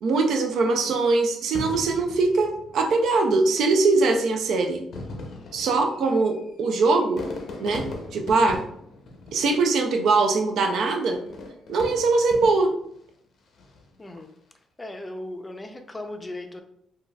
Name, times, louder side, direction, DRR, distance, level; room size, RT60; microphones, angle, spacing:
voice 1, 0.0-4.8 5.5-7.2 7.6-7.8 8.1-8.6 9.3-11.2 11.7-12.7, right 3 dB, 70° right, 4 dB, 0.5 m, -22 dB
Fireworks, 1.5-3.2 4.0-4.1 4.8-10.1 11.1-12.9 13.5-13.9, left 2 dB, 65° left, 0.6 m, -39 dB
voice 2, 14.0-14.3 14.8-16.6, left 1 dB, 20° left, 6 dB, 0.4 m, -37 dB
3.8 x 2.3 x 2.2 m, 0.70 s
cardioid pair, 90°, 0 cm